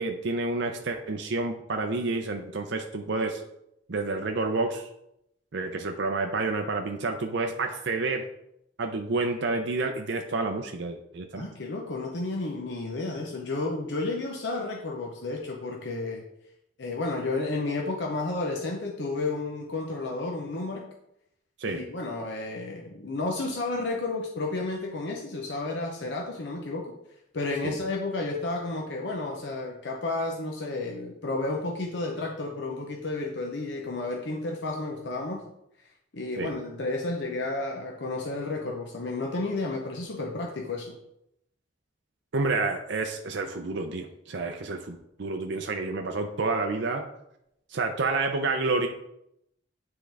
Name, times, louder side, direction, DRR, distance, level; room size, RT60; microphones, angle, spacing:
voice 1, 0.0-3.4 3.9-4.9 5.5-8.2 8.8-11.5 21.6-21.8 27.6-27.8 36.4-36.5 42.3-47.1 47.7-48.9, right 3 dB, 65° right, 4 dB, 0.6 m, -29 dB
voice 2, 11.3-16.2 16.8-20.8 21.6-26.9 27.3-35.5 36.1-41.0, left 2 dB, 65° left, 0 dB, 0.8 m, -32 dB
9.6 x 3.7 x 3.5 m, 0.80 s
head